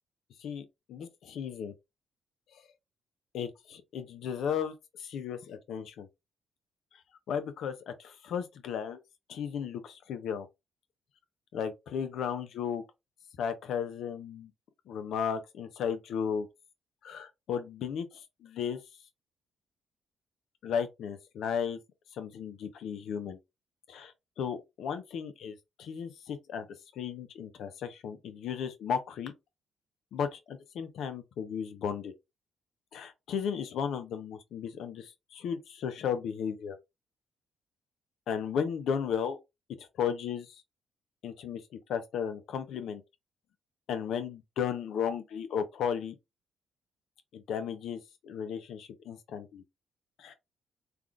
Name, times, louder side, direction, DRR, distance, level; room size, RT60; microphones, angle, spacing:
voice 1, 0.9-1.7 3.3-6.1 7.3-9.0 9.3-10.5 11.5-12.8 13.4-14.5 14.9-16.5 17.0-18.8 20.6-21.8 22.1-23.4 23.9-26.7 27.0-29.3 30.1-32.2 32.9-36.8 38.3-39.4 39.8-40.6 41.2-41.6 41.9-43.0 43.9-46.1 47.3-49.6 50.2-50.3, left 7 dB, 75° left, 0.6 m, -35 dB
3.5 x 2.5 x 2.3 m
cardioid pair, 90°, 0 cm